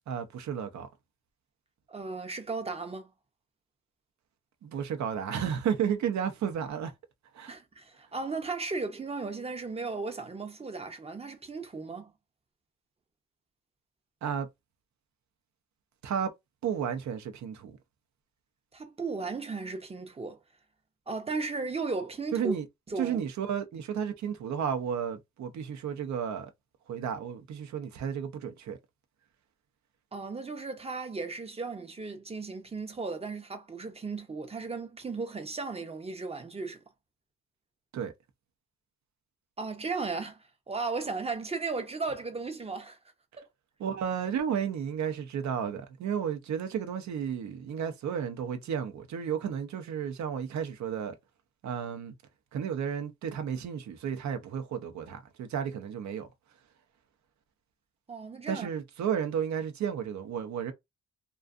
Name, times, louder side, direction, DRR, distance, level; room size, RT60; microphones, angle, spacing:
voice 1, 0.1-0.9 4.6-6.9 7.3-7.5 14.2-14.5 16.0-16.3 16.6-17.8 22.3-22.7 23.0-26.5 26.9-28.8 37.9-38.1 43.8-51.1 51.6-52.1 52.5-56.3 58.5-60.7, right 8 dB, 70° right, 0.6 m, -32 dB
voice 2, 1.9-3.1 7.5-12.1 18.7-20.4 21.1-22.5 22.9-23.2 30.1-36.8 39.6-40.4 40.7-43.0 43.4-43.5 58.1-58.7, right 4 dB, 20° right, 0.6 m, -35 dB
2.5 x 2.3 x 2.4 m
cardioid pair, 95°, 30 cm